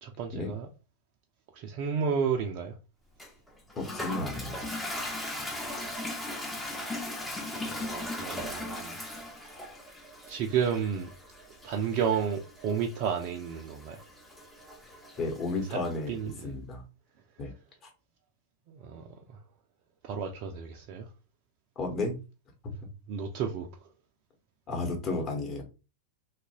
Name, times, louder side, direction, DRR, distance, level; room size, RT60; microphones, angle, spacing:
voice 1, 0.0-0.7 1.6-2.7 7.5-8.9 10.3-11.1 11.6-14.0 15.7-15.8 16.1-16.3 18.7-19.1 20.0-21.1 23.1-23.7, right 7 dB, 45° right, 0.4 m, -31 dB
Toilet flush, 3.2-16.0, left 1 dB, 5° left, 0.6 m, -39 dB
voice 2, 3.7-4.7 15.2-16.1 16.4-16.8 17.4-17.5 21.8-22.1 24.7-25.6, left 3 dB, 30° left, 1.1 m, -32 dB
2.9 x 2.4 x 2.8 m
figure-of-eight pair, 90°, 0 cm